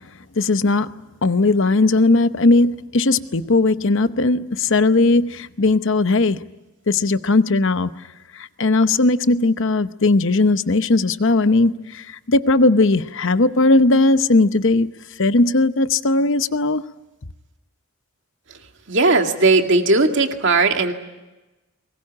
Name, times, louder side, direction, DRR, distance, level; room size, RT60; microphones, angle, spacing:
voice 1, 0.4-0.9 1.2-6.4 6.9-8.0 8.6-14.9 15.2-16.8, left 2 dB, 55° left, 0.8 m, -18 dB
voice 2, 18.9-20.9, right 3 dB, 55° right, 2.2 m, -17 dB
23.0 x 21.0 x 9.9 m
head